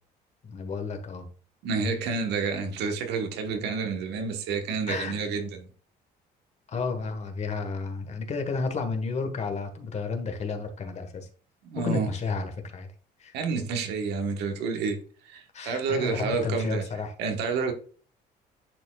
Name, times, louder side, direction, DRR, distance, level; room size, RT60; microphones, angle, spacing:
voice 1, 0.4-1.2 4.9-5.1 6.7-11.3 11.7-12.9 13.2-13.3 15.5-17.1, left 4 dB, 40° left, 1.3 m, -32 dB
voice 2, 1.6-5.7 11.6-12.1 13.3-15.0 15.2-16.8 17.2-17.7, right 4 dB, 85° right, 1.2 m, -29 dB
10.0 x 4.4 x 2.3 m
cardioid pair, 110°, 17 cm